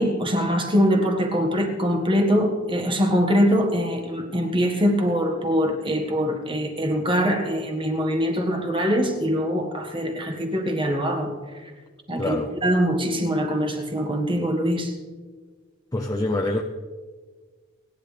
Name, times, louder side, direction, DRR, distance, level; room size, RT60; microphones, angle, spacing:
voice 1, 0.0-11.3 11.6-11.7 12.1-12.4 12.6-14.9, equal, 25° right, 3 dB, 1.6 m, -23 dB
voice 2, 12.2-12.5 15.9-16.6, left 1 dB, 15° left, 1 dB, 0.6 m, -25 dB
30.0 x 10.5 x 3.4 m, 1.5 s
head